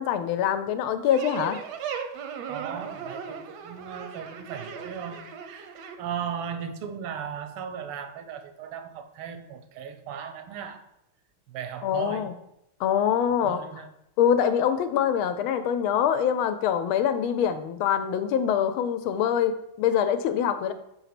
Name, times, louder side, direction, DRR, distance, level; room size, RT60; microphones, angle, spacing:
voice 1, 0.0-1.6 11.8-12.3 12.8-13.6 14.2-20.7, left 9 dB, 80° left, 1.4 m, -24 dB
sound 1, 1.1-5.9, right 7 dB, 65° right, 1.1 m, -37 dB
voice 2, 2.5-5.7 6.0-10.9 11.5-12.3 13.3-13.9, right 8 dB, 85° right, 1.7 m, -37 dB
5.7 x 4.1 x 5.8 m
omnidirectional pair, 2.4 m